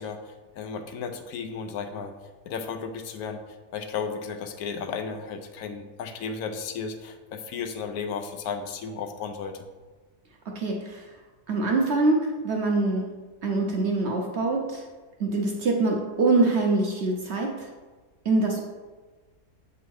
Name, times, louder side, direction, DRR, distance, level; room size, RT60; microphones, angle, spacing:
voice 1, 0.0-2.2 2.4-9.6, left 5 dB, 75° left, 6 dB, 1.0 m, -34 dB
voice 2, 10.5-11.1 11.5-13.1 13.4-14.8 15.2-17.7 18.2-18.6, right 3 dB, 55° right, 0 dB, 0.8 m, -24 dB
7.0 x 3.7 x 4.5 m, 1.3 s
omnidirectional pair, 1.7 m